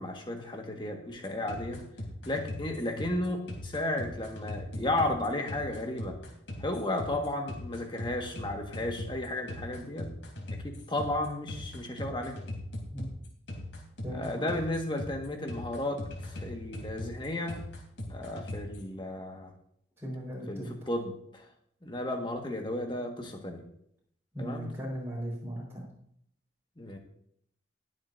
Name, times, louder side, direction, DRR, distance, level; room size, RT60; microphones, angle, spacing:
voice 1, 0.0-1.8 2.2-6.2 6.6-10.1 10.5-12.4 14.1-17.7 18.1-19.5 20.5-21.5 21.8-23.6 24.4-24.7 26.8-27.0, left 1 dB, 25° left, 2 dB, 1.7 m, -34 dB
sound 1, 1.1-18.8, left 1 dB, 80° left, 3.3 m, -40 dB
voice 2, 14.0-14.5 20.0-20.9 24.3-25.9, equal, 15° right, -6 dB, 4.7 m, -37 dB
21.0 x 7.8 x 2.7 m, 0.71 s
head